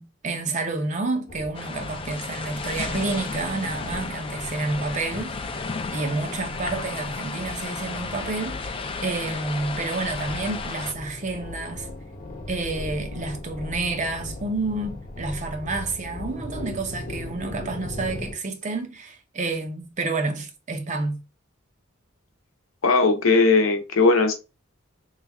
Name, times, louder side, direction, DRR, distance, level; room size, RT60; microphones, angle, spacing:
voice 1, 0.0-5.5 5.9-11.9 12.5-21.2, right 3 dB, 35° right, 0.6 m, -29 dB
sound 1, 1.3-18.3, left 1 dB, 45° left, 0.9 m, -38 dB
sound 2, 1.5-10.9, left 4 dB, 25° left, 0.4 m, -33 dB
voice 2, 22.8-24.3, left 3 dB, 85° left, 0.7 m, -18 dB
3.2 x 2.3 x 3.4 m
head